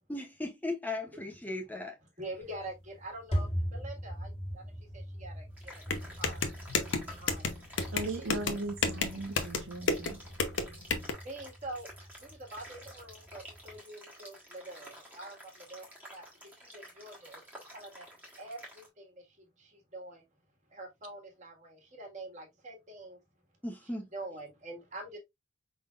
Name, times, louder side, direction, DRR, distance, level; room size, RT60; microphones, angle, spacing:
voice 1, 0.1-2.0 23.6-24.1, left 2 dB, 10° left, 0.6 m, -37 dB
voice 2, 2.2-6.5 7.1-7.7 8.0-8.4 11.2-18.0 18.4-20.2 20.7-23.2 24.1-25.2, right 2 dB, 35° right, 1.7 m, -46 dB
sound 1, 2.4-13.8, equal, 30° left, 1.2 m, -41 dB
sound 2, 5.6-18.9, equal, 10° right, 1.4 m, -51 dB
sound 3, 5.9-11.1, left 4 dB, 65° left, 0.8 m, -32 dB
voice 3, 7.9-10.2, right 2 dB, 75° right, 0.8 m, -38 dB
5.2 x 3.8 x 2.4 m
head